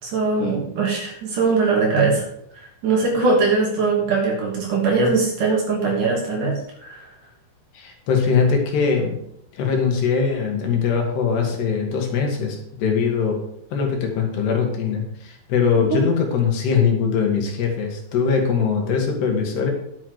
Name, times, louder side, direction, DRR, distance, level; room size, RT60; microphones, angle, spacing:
voice 1, 0.0-2.3 2.6-7.1 15.9-16.0, right 4 dB, 50° right, -2 dB, 3.9 m, -21 dB
voice 2, 7.7-9.2 9.5-13.4 13.7-19.7, left 6 dB, 75° left, 1 dB, 4.0 m, -21 dB
10.5 x 8.8 x 4.9 m, 0.74 s
omnidirectional pair, 4.9 m